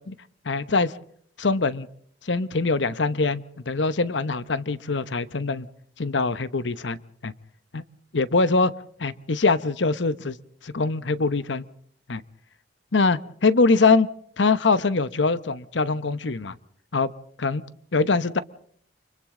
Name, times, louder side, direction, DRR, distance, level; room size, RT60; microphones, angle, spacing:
voice 1, 0.4-0.9 1.4-1.9 2.2-5.7 6.0-7.0 7.2-7.3 7.7-7.8 8.1-8.7 9.0-10.4 10.6-11.6 12.1-12.2 12.9-14.1 14.4-16.5 16.9-17.1 17.4-17.6 17.9-18.4, left 3 dB, 90° left, 15 dB, 1.0 m, -23 dB
30.0 x 24.0 x 3.8 m, 0.62 s
head